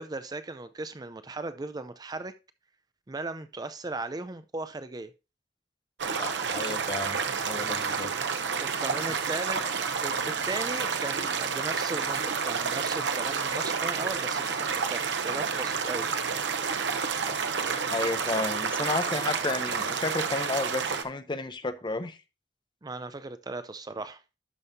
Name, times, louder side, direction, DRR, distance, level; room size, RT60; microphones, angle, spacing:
voice 1, 0.0-2.3 3.1-5.1 8.6-9.6 10.0-16.1 22.8-24.2, right 3 dB, 20° right, 0.5 m, -37 dB
sound 1, 6.0-21.0, right 5 dB, 90° right, 0.9 m, -30 dB
voice 2, 6.2-7.2 7.5-8.1 17.2-17.3 17.9-22.2, left 3 dB, 25° left, 0.7 m, -32 dB
12.0 x 5.5 x 2.7 m
head